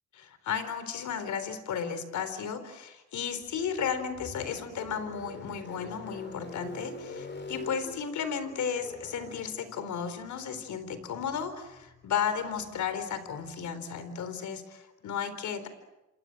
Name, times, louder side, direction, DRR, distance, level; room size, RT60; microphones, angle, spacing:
voice 1, 0.1-15.7, left 7 dB, 70° left, 12 dB, 4.0 m, -34 dB
sound 1, 3.4-13.7, left 3 dB, 35° left, 4.5 m, -46 dB
28.0 x 27.0 x 7.7 m, 0.97 s
cardioid pair, 90°, 30 cm